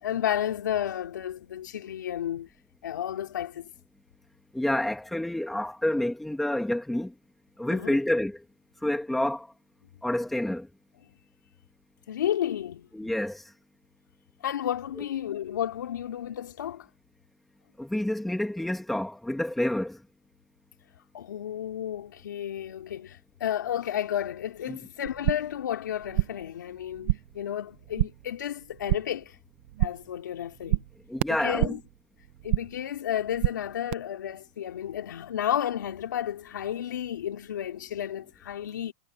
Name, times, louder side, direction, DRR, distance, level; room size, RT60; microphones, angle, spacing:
voice 1, 0.0-2.5 2.8-3.7 7.7-8.0 12.1-12.9 14.4-16.9 21.1-29.4 29.8-30.8 31.3-31.8 32.4-38.9, left 10 dB, 90° left, 3.6 m, -32 dB
voice 2, 4.5-7.2 7.6-8.4 8.8-9.5 10.0-10.7 12.9-13.5 17.8-20.0 24.7-24.8 31.1-31.8, left 1 dB, ahead, 2.1 m, -28 dB
sound 1, 25.1-25.6 25.9-26.5 26.8-27.4 27.7-28.3 28.6-29.3 29.5-30.2 30.4-31.9 32.2-32.9 33.1-33.9, right 16 dB, 40° right, 0.9 m, -29 dB
supercardioid pair, 180°, 10 cm